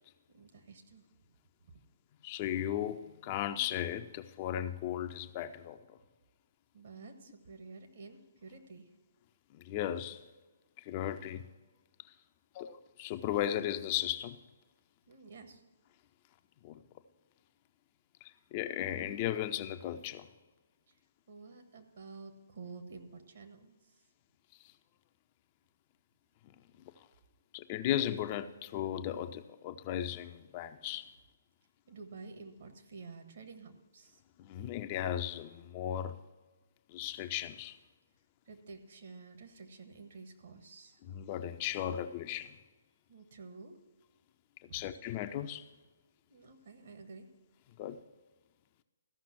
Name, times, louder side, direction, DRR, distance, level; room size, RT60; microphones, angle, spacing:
voice 1, 0.3-1.0 6.7-8.9 15.1-15.6 21.3-23.8 31.9-34.2 38.5-41.0 43.1-43.8 44.8-44.9 46.3-47.3, right 4 dB, 55° right, 6 dB, 1.4 m, -50 dB
voice 2, 2.2-6.0 9.5-10.3 10.8-11.5 12.5-14.4 16.6-16.8 18.2-20.3 27.0-27.1 27.5-31.1 34.4-36.2 36.9-37.8 41.0-42.6 44.6-45.7 47.8-48.0, left 11 dB, 30° left, 9 dB, 0.4 m, -36 dB
14.0 x 5.8 x 5.9 m, 1.2 s
figure-of-eight pair, 135°, 0 cm